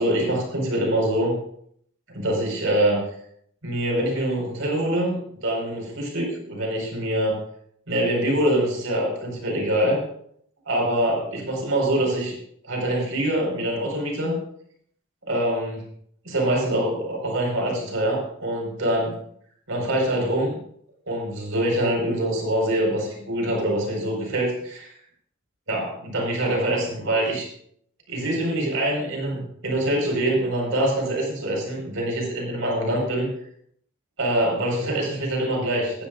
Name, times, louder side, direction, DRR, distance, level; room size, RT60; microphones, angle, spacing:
voice 1, 0.0-1.4 2.1-3.0 3.6-7.4 7.9-10.0 10.7-12.4 12.6-14.4 15.3-15.8 16.2-19.1 19.7-20.6 21.1-24.9 25.7-27.5 28.1-33.3 34.2-36.1, right 1 dB, 70° right, 0 dB, 4.8 m, -24 dB
18.5 x 13.0 x 2.5 m, 0.67 s
head